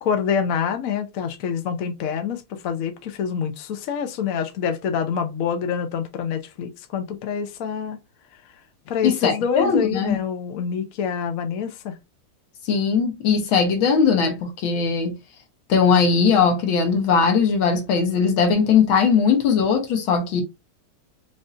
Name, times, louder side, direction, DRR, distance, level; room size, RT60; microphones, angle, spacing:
voice 1, 0.0-8.0 8.9-12.0, left 7 dB, 60° left, 0.9 m, -26 dB
voice 2, 9.0-10.2 12.7-15.2 15.7-20.4, left 6 dB, 80° left, 1.8 m, -19 dB
5.3 x 2.6 x 2.5 m
omnidirectional pair, 2.2 m